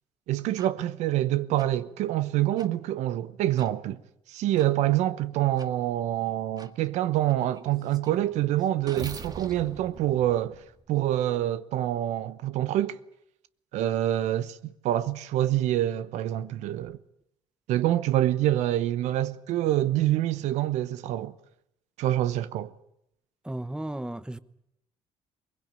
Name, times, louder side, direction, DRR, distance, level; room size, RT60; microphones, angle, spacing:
voice 1, 0.3-4.0 4.3-10.6 10.9-13.0 13.7-17.0 17.7-21.3 22.0-22.7, right 13 dB, 85° right, 0.9 m, -26 dB
sound 1, 0.6-0.7 1.6-1.7 2.6-2.7 3.6-3.7 4.6-4.7 5.6-5.7 6.6-6.7 7.3-11.1, right 4 dB, 35° right, 1.8 m, -44 dB
voice 2, 23.4-24.4, right 1 dB, 5° right, 1.0 m, -34 dB
22.0 x 20.5 x 9.1 m
cardioid pair, 85°, 11 cm